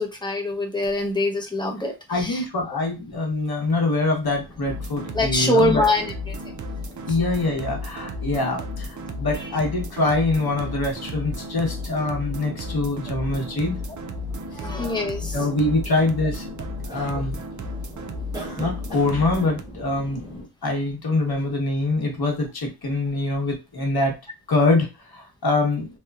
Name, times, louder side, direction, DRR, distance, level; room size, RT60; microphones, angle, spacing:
voice 1, 0.0-2.4 5.1-6.4 9.3-9.4 14.5-15.4, left 1 dB, 10° left, 0.6 m, -24 dB
voice 2, 2.1-5.8 7.1-13.8 15.3-17.4 18.5-24.1 24.5-25.9, left 2 dB, 55° left, 1.0 m, -24 dB
sound 1, 4.2-20.5, equal, 10° right, 1.0 m, -42 dB
sound 2, 4.6-19.6, left 1 dB, 45° right, 0.4 m, -34 dB
2.9 x 2.1 x 2.3 m
wide cardioid pair, 85°, 45 cm